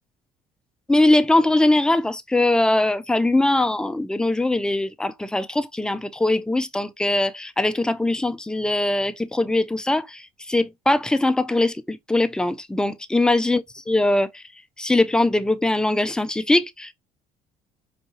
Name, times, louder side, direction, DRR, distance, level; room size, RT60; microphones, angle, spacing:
voice 1, 0.9-14.4 14.8-16.9, left 2 dB, 5° left, 0.3 m, -21 dB
4.5 x 2.8 x 2.8 m
cardioid pair, 110°, 17 cm